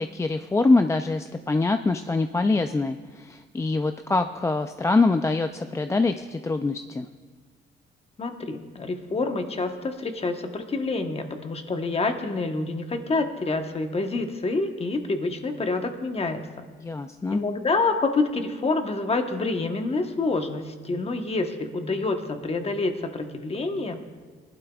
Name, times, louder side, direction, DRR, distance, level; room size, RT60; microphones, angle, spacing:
voice 1, 0.0-7.1 16.8-17.4, left 3 dB, 15° left, 7 dB, 0.3 m, -24 dB
voice 2, 8.2-16.7 17.3-24.0, left 3 dB, 30° left, 6 dB, 1.1 m, -27 dB
19.0 x 11.5 x 2.3 m, 1.5 s
cardioid pair, 90°, 20 cm